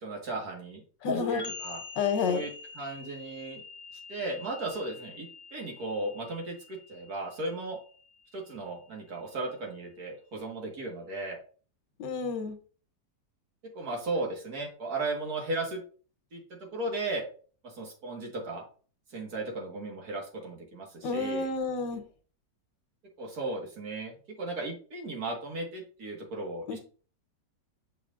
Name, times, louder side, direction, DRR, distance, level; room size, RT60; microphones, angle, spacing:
voice 1, 0.0-0.8 1.3-1.8 2.3-3.6 4.1-7.8 8.3-11.4 13.7-15.8 16.3-16.4 16.7-17.3 17.6-18.6 19.1-21.5 23.2-26.8, right 2 dB, 60° right, 1 dB, 2.1 m, -36 dB
voice 2, 1.0-1.5 2.0-2.4 12.0-12.6 21.0-22.0 26.7-26.8, left 4 dB, 90° left, 7 dB, 1.6 m, -30 dB
sound 1, 1.1-8.6, left 5 dB, 40° left, 0.9 m, -42 dB
6.8 x 5.7 x 2.4 m, 0.40 s
omnidirectional pair, 1.9 m